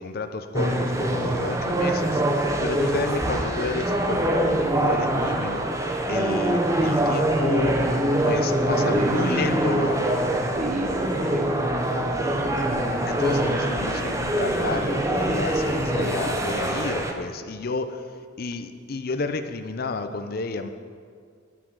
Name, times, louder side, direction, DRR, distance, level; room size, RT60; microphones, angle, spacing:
voice 1, 0.0-5.8 6.1-7.8 8.2-10.4 13.1-20.7, left 3 dB, 50° left, 8 dB, 0.5 m, -31 dB
sound 1, 0.5-17.1, right 1 dB, 15° right, 0.6 m, -24 dB
voice 2, 3.0-3.4 8.8-9.3 10.6-12.8 15.7-16.1, right 1 dB, 40° right, 4 dB, 0.9 m, -32 dB
11.0 x 6.0 x 6.2 m, 2.1 s
head